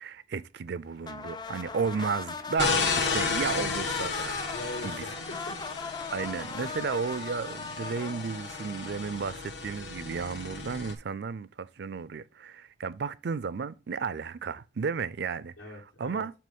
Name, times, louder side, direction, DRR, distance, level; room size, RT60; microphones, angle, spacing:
voice 1, 0.0-4.4 4.8-5.1 6.1-15.5 16.0-16.3, right 5 dB, 55° right, 0.4 m, -33 dB
sound 1, 1.0-9.5, left 4 dB, 20° left, 0.3 m, -39 dB
sound 2, 1.6-6.9, left 2 dB, 40° left, 1.5 m, -53 dB
sound 3, 2.6-10.9, left 4 dB, 60° left, 1.0 m, -33 dB
voice 2, 3.3-3.6 4.5-5.6 6.6-6.7 15.6-16.2, left 1 dB, 80° left, 3.6 m, -42 dB
7.6 x 3.0 x 5.3 m
head